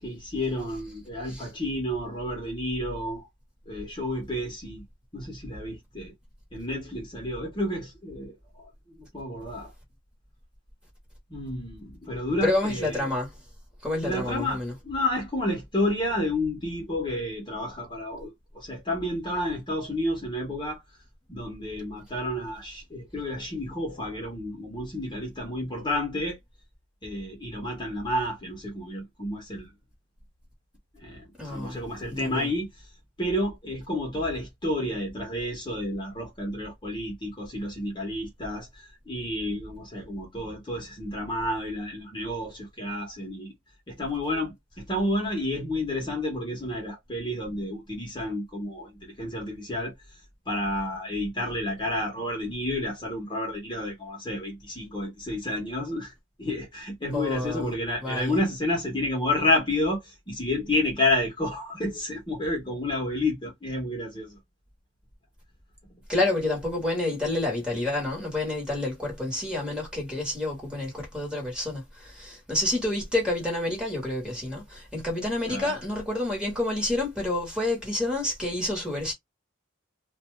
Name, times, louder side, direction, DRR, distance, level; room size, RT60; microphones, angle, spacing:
voice 1, 0.0-3.3 3.7-4.8 5.1-6.1 6.5-9.7 11.3-13.1 14.0-20.8 21.3-26.4 27.0-29.7 30.9-32.8 33.2-43.5 43.9-49.9 50.5-56.1 56.4-64.4 75.4-75.8, left 1 dB, 25° left, 0.9 m, -30 dB
voice 2, 12.4-13.3 13.8-14.7 31.4-31.8 32.1-32.5 57.1-57.7 58.0-58.4 66.1-79.1, left 2 dB, 5° right, 1.2 m, -29 dB
2.5 x 2.3 x 3.1 m
head